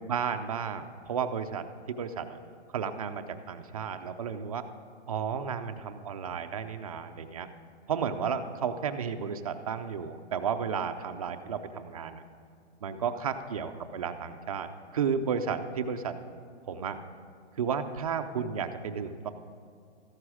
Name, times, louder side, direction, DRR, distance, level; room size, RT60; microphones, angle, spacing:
voice 1, 0.0-2.4 2.7-4.6 5.1-7.5 7.9-12.2 12.8-16.2 16.7-17.0 17.6-19.3, right 6 dB, 30° right, 7 dB, 0.5 m, -33 dB
14.0 x 11.0 x 4.9 m, 2.3 s
hypercardioid pair, 165°, 35 cm